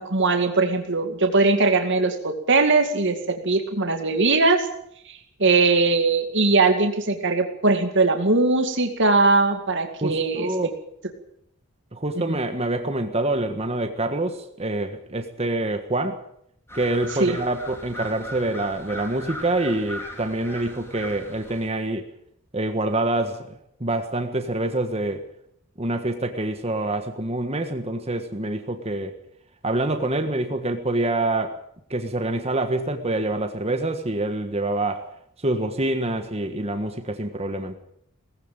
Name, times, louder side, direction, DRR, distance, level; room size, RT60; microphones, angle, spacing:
voice 1, 0.0-4.7 5.4-10.5 12.3-12.4 17.2-17.4, right 3 dB, 55° right, 5 dB, 2.2 m, -20 dB
voice 2, 10.0-10.7 11.9-16.2 16.7-22.1 22.5-25.2 25.8-29.1 29.6-31.6 31.9-35.1 35.4-37.8, right 2 dB, 30° right, 6 dB, 1.5 m, -26 dB
sound 1, 16.7-21.7, equal, 10° left, 3.9 m, -39 dB
19.0 x 15.5 x 8.8 m, 0.74 s
head